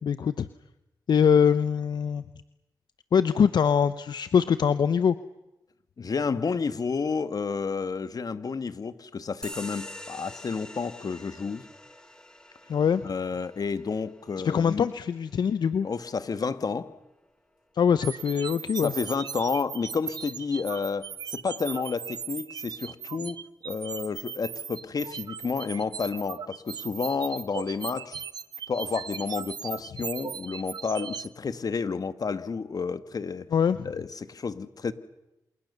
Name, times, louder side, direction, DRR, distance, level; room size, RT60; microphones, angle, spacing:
voice 1, 0.0-0.5 1.1-2.2 3.1-5.2 12.7-13.1 14.4-15.9 17.8-18.9 33.5-33.9, left 7 dB, 75° left, 13 dB, 0.9 m, -23 dB
voice 2, 6.0-11.7 13.0-14.9 15.8-16.9 18.8-23.4 23.6-28.2 28.7-33.5 33.8-34.9, left 5 dB, 60° left, 12 dB, 1.9 m, -30 dB
sound 1, 9.4-16.5, left 1 dB, 10° left, 4.7 m, -46 dB
sound 2, 18.0-31.3, right 7 dB, 70° right, 1.1 m, -38 dB
28.5 x 28.0 x 7.0 m, 0.93 s
cardioid pair, 55°, 7 cm